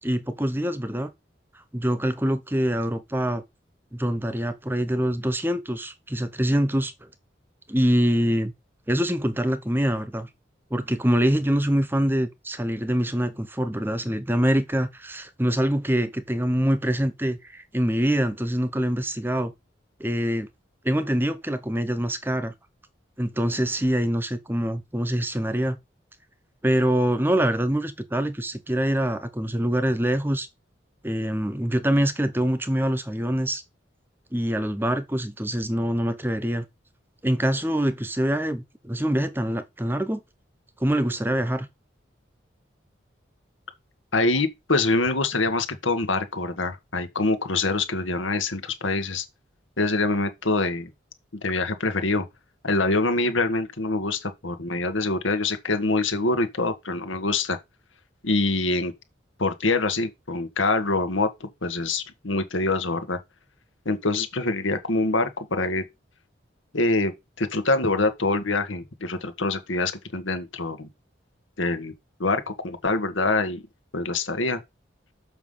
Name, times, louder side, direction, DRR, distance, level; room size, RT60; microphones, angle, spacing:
voice 1, 0.0-1.1 1.7-3.4 3.9-7.1 7.7-8.5 8.9-10.3 10.7-19.5 20.0-20.5 20.8-22.5 23.2-25.8 26.6-30.5 31.0-33.6 34.3-36.6 37.2-40.2 40.8-41.7, equal, 10° right, 0.8 m, -24 dB
voice 2, 44.1-49.2 49.8-50.9 51.3-52.2 52.6-57.6 58.2-58.9 59.4-63.2 63.8-65.8 66.7-70.9 71.6-71.9 72.2-73.6 73.9-74.6, left 3 dB, 90° left, 1.7 m, -25 dB
7.1 x 5.8 x 5.6 m
head